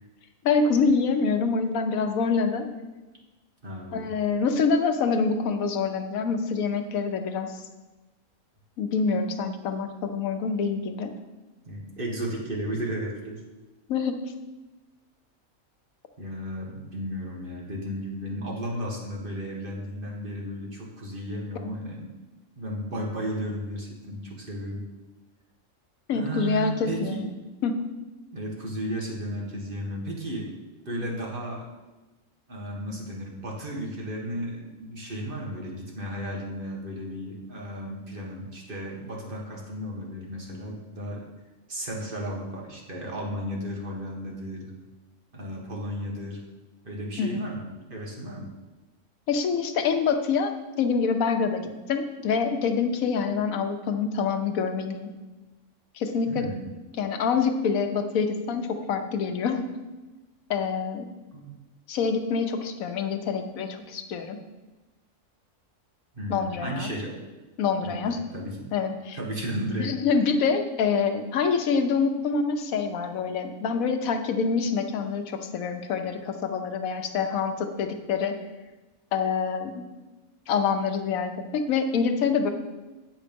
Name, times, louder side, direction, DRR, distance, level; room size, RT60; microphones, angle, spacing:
voice 1, 0.4-2.7 3.9-7.5 8.8-11.1 13.9-14.2 26.1-27.3 27.6-27.8 47.2-47.5 49.3-50.5 50.8-55.1 55.9-56.4 57.0-59.7 60.5-61.1 61.9-64.4 66.3-66.9 67.6-68.2 68.7-69.2 69.8-78.4 79.1-79.8 80.5-82.5, left 5 dB, 90° left, 7 dB, 1.2 m, -26 dB
voice 2, 3.6-4.1 11.6-13.4 16.2-22.1 22.6-24.8 26.1-27.2 28.3-30.5 30.8-31.7 32.5-41.2 41.7-44.7 45.3-46.4 46.8-48.5 56.3-56.6 61.3-61.5 66.1-67.2 67.8-68.7 69.1-69.9, equal, 40° right, -2 dB, 1.6 m, -34 dB
8.5 x 5.3 x 5.2 m, 1.1 s
omnidirectional pair, 1.4 m